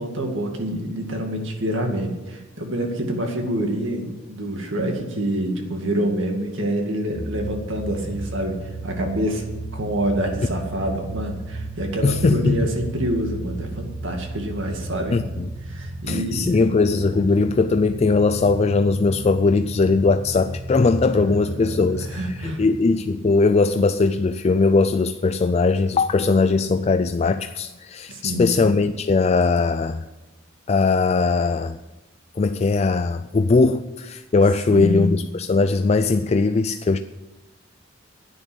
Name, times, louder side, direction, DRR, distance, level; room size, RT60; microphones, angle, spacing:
voice 1, 0.0-9.4 9.7-15.2 15.7-16.6 17.1-17.3 21.2-22.6 28.1-28.7 34.7-35.2, equal, 65° right, 2.3 m, -27 dB
sound 1, 7.1-22.7, right 2 dB, 50° left, 2.3 m, -34 dB
voice 2, 12.0-12.7 15.1-15.5 16.1-30.0 30.7-31.8 32.4-37.0, left 3 dB, 30° left, 0.3 m, -20 dB
11.0 x 9.4 x 7.9 m
head